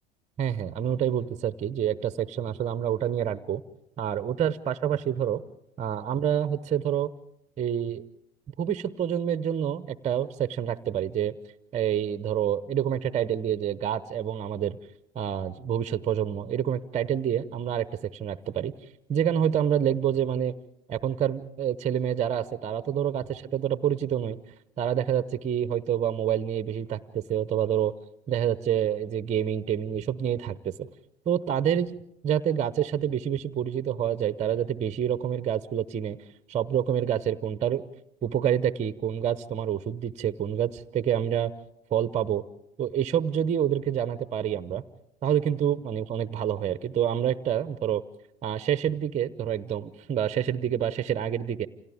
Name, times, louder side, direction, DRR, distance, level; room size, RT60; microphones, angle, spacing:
voice 1, 0.4-3.6 4.0-5.4 5.8-7.1 7.6-8.0 8.6-11.3 11.7-14.8 15.1-18.7 19.1-20.5 20.9-24.4 24.8-27.9 28.3-30.9 31.3-32.0 32.2-36.2 36.5-37.8 38.2-41.5 41.9-42.4 42.8-44.8 45.2-48.0 48.4-51.7, right 9 dB, 20° right, 14 dB, 0.8 m, -27 dB
29.5 x 27.0 x 3.6 m, 0.81 s
figure-of-eight pair, 80°, 32 cm